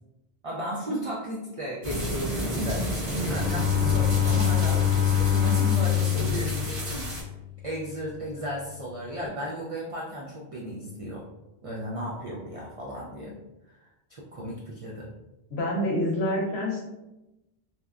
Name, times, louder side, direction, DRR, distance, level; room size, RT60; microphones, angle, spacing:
voice 1, 0.4-7.1 7.6-11.3 11.6-13.3 13.8-15.1, equal, 65° right, -4 dB, 0.3 m, -34 dB
sound 1, 1.8-7.2, equal, 40° right, 0.9 m, -31 dB
Bowed string instrument, 3.2-7.7, left 11 dB, 90° right, 1.0 m, -25 dB
voice 2, 15.5-16.9, left 1 dB, 75° left, -1 dB, 0.9 m, -27 dB
2.8 x 2.1 x 2.3 m, 0.97 s
omnidirectional pair, 1.1 m